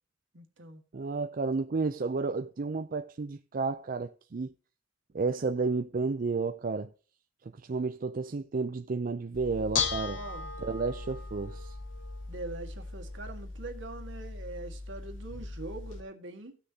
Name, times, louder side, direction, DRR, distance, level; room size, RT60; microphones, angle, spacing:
voice 1, 0.3-0.8 10.1-10.5 12.3-16.6, right 2 dB, 75° right, 1.7 m, -43 dB
voice 2, 0.9-4.5 5.1-6.9 7.6-10.2 10.6-11.8, right 4 dB, 45° right, 0.5 m, -32 dB
Bell / Dishes pots and pans, 9.3-16.0, left 5 dB, 80° left, 1.4 m, -37 dB
16.5 x 6.4 x 2.8 m
head